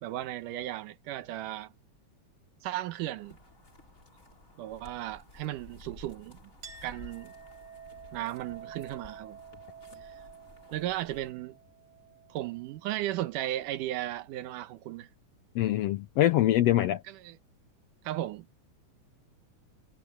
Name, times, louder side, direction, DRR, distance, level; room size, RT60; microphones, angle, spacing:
voice 1, 0.0-1.7 2.6-3.4 4.6-6.4 6.8-7.3 8.1-9.4 10.0-10.2 10.7-11.6 12.3-15.1 17.1-17.4 18.0-18.5, right 14 dB, 85° right, 2.5 m, -35 dB
sound 1, 3.2-11.3, left 2 dB, 25° left, 5.2 m, -54 dB
Chink clink, 6.6-13.7, right 7 dB, 50° right, 8.4 m, -50 dB
voice 2, 15.5-17.0, left 13 dB, 80° left, 1.5 m, -24 dB
omnidirectional pair, 3.6 m